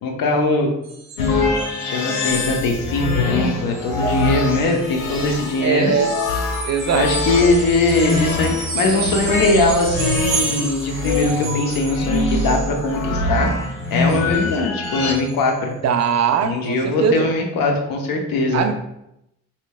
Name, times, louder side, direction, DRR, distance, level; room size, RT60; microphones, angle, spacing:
voice 1, 0.0-0.7 1.3-1.4 1.8-5.9 6.9-15.7 16.4-18.6, left 2 dB, 60° left, 1 dB, 0.8 m, -21 dB
sound 1, 0.8-1.9 2.2-2.8 3.1-3.3 3.7-3.9 6.5-13.0 13.4-14.5 14.8-14.9 15.1-15.5 16.0-16.1, right 4 dB, 80° right, 0.7 m, -31 dB
sound 2, 1.2-15.1, left 2 dB, 85° left, 0.5 m, -24 dB
voice 2, 5.6-6.1 6.6-7.1 15.8-17.3 18.5-18.7, right 7 dB, 45° right, 6 dB, 0.4 m, -20 dB
4.3 x 2.9 x 2.2 m, 0.82 s
hypercardioid pair, 40°, 40 cm